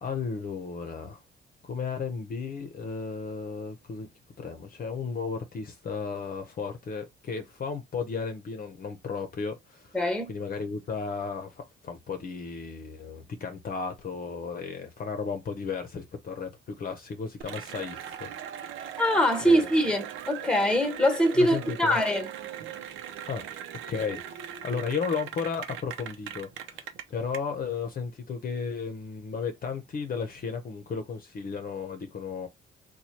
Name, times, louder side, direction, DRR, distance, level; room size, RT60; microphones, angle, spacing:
voice 1, 0.0-1.2 1.6-4.1 4.4-10.0 10.3-18.3 18.6-19.0 19.4-19.7 21.4-22.0 23.2-23.5 23.9-32.5, left 5 dB, 45° left, 0.7 m, -34 dB
voice 2, 9.9-10.3 19.0-22.3, equal, 5° left, 1.2 m, -23 dB
Cheering / Applause, 17.4-27.4, right 10 dB, 80° right, 0.7 m, -39 dB
3.0 x 2.3 x 4.2 m
cardioid pair, 90°, 20 cm